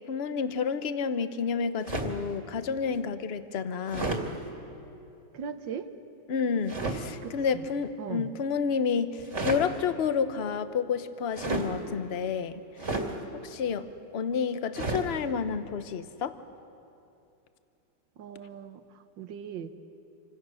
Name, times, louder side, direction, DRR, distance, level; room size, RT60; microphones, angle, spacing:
voice 1, 0.1-4.2 6.3-12.6 13.0-13.1 13.4-13.9 14.1-16.4, left 6 dB, 45° left, 11 dB, 0.9 m, -30 dB
Jacket Shake, 1.8-2.3 3.9-4.3 6.7-7.0 9.2-9.7 11.3-11.7 12.8-13.1 14.7-15.1, right 2 dB, 40° right, 2.5 m, -31 dB
voice 2, 5.3-5.9 7.2-7.7 8.0-8.3 18.2-19.7, right 8 dB, 70° right, 9 dB, 1.8 m, -39 dB
28.0 x 25.5 x 6.4 m, 2.7 s
omnidirectional pair, 2.1 m